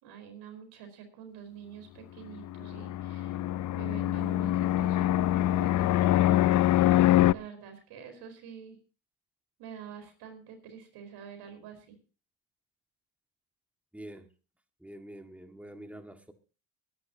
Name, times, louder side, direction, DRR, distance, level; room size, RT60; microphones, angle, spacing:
voice 1, 0.0-3.4 3.7-6.4 7.3-8.8 9.6-12.0, right 8 dB, 85° right, 7 dB, 4.6 m, -46 dB
Fixed-wing aircraft airplane, 2.4-7.3, left 14 dB, 50° left, 0.5 m, -24 dB
voice 2, 13.9-14.3 14.8-16.3, right 1 dB, 5° right, 6 dB, 1.9 m, -46 dB
21.0 x 11.5 x 2.9 m, 0.36 s
supercardioid pair, 85°, 39 cm